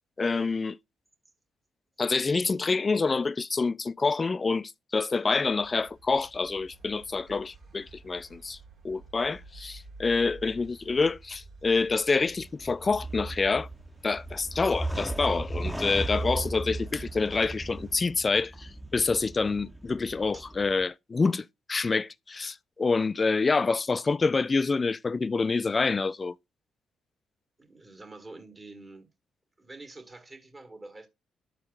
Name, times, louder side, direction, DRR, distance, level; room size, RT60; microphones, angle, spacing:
voice 1, 0.2-0.8 2.0-8.6 8.8-13.7 14.0-26.3, left 4 dB, 35° left, 0.3 m, -27 dB
sound 1, 5.3-18.0, right 3 dB, 70° right, 2.9 m, -50 dB
sound 2, 12.3-20.8, right 2 dB, 5° left, 0.7 m, -36 dB
voice 2, 27.6-29.1 29.6-31.1, right 2 dB, 30° right, 1.8 m, -47 dB
13.0 x 4.4 x 2.4 m
hypercardioid pair, 55°, 0 cm